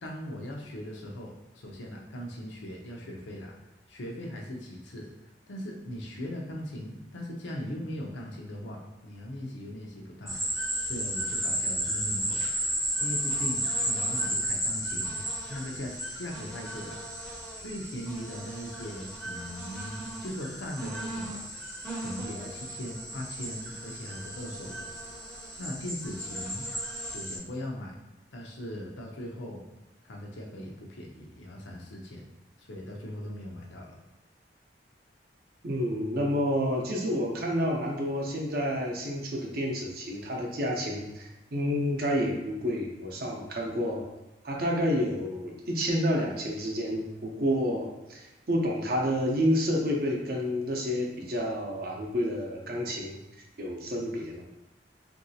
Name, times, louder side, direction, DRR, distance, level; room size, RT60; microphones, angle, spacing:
voice 1, 0.0-3.6 3.9-5.1 5.5-12.5 13.0-17.0 17.3-21.4 21.8-24.9 25.6-26.7 27.1-27.9 28.3-29.6 30.0-32.3 32.6-34.0, left 1 dB, 90° left, 0 dB, 0.6 m, -39 dB
sound 1, 10.3-27.4, right 1 dB, ahead, 0.5 m, -34 dB
voice 2, 35.6-44.0 44.4-53.2 53.6-54.4, equal, 55° right, 0 dB, 0.6 m, -29 dB
3.0 x 2.6 x 2.7 m, 0.97 s
head